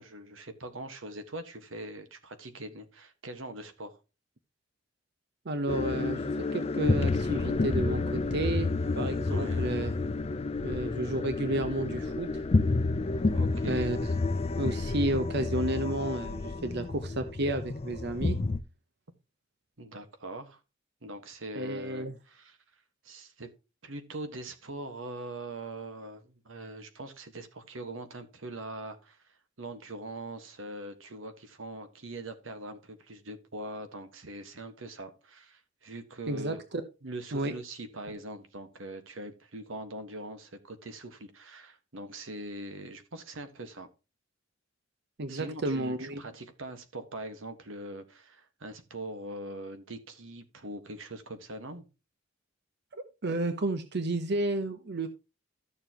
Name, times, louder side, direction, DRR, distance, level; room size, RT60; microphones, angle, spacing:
voice 1, 0.0-4.0 9.3-9.7 13.3-13.9 19.8-20.6 21.0-22.6 23.0-23.5 23.8-36.6 37.0-43.9 45.3-51.8, right 1 dB, 85° right, 1.5 m, -42 dB
voice 2, 5.4-9.9 10.6-12.4 13.6-14.0 14.6-18.4 21.5-22.1 36.3-36.5 37.3-37.5 45.2-46.2 52.9-55.1, right 1 dB, 60° right, 0.8 m, -32 dB
sound 1, 5.7-18.6, left 3 dB, 30° left, 0.5 m, -30 dB
13.0 x 7.0 x 2.9 m
head